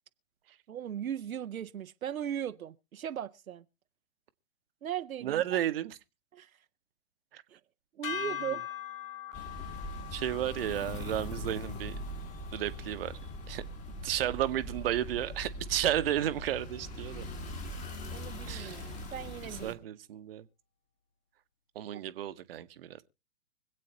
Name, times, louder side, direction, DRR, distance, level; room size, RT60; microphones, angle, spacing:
voice 1, 0.7-3.6 4.8-5.4 6.3-6.5 7.5-7.6 8.0-8.6 18.1-19.8, right 10 dB, 75° right, 0.6 m, -38 dB
voice 2, 5.2-6.0 7.3-7.4 8.1-8.6 10.1-12.0 12.5-13.2 13.5-13.6 14.0-17.3 18.5-18.9 19.4-20.5 21.7-23.0, right 12 dB, 45° right, 0.9 m, -33 dB
sound 1, 8.0-14.4, left 10 dB, 70° left, 1.1 m, -43 dB
sound 2, 9.3-19.7, left 1 dB, 15° left, 1.4 m, -41 dB
25.0 x 8.4 x 2.8 m
figure-of-eight pair, 125°, 42 cm